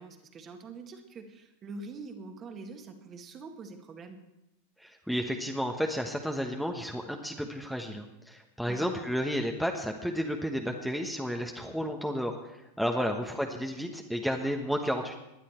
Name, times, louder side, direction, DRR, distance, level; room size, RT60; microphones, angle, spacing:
voice 1, 0.0-4.2 8.7-9.1 13.0-13.3, right 3 dB, 30° right, 5 dB, 2.0 m, -44 dB
voice 2, 4.8-15.2, equal, ahead, 2 dB, 1.3 m, -32 dB
19.0 x 11.0 x 4.5 m, 0.91 s
figure-of-eight pair, 90°, 0 cm